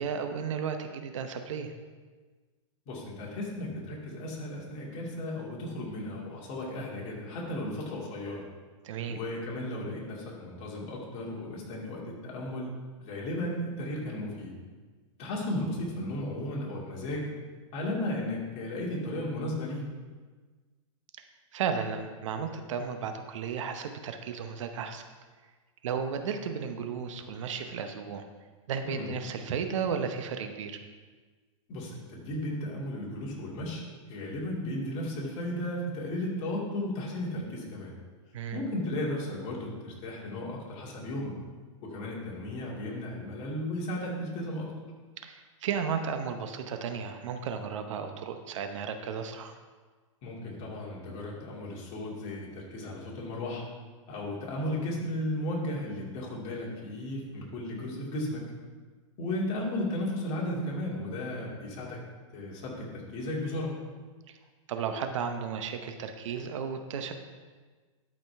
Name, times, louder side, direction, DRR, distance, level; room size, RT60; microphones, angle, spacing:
voice 1, 0.0-1.7 8.8-9.2 21.5-25.0 25.8-28.3 28.7-30.8 38.3-38.6 45.2-49.6 64.7-67.1, right 6 dB, 70° right, 7 dB, 0.8 m, -34 dB
voice 2, 2.9-8.4 9.1-12.7 13.0-14.6 15.2-17.3 17.7-19.9 28.8-29.1 31.7-38.0 38.5-41.3 41.8-44.7 50.2-53.6 54.1-58.5 59.2-62.0 62.3-63.7, left 1 dB, 40° left, -4 dB, 2.5 m, -35 dB
12.0 x 5.2 x 3.4 m, 1.4 s
hypercardioid pair, 135°, 17 cm